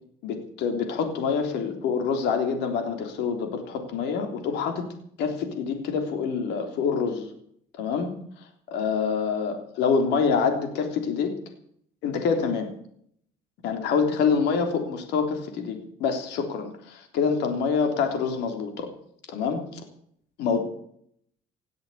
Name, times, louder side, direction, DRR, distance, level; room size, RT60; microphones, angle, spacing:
voice 1, 0.2-4.9 5.2-7.3 7.8-8.1 8.4-11.3 12.0-12.7 13.6-18.9 19.3-19.8 20.4-20.6, left 5 dB, 85° left, 5 dB, 3.4 m, -26 dB
18.0 x 8.0 x 8.6 m, 0.66 s
cardioid pair, 110°, 17 cm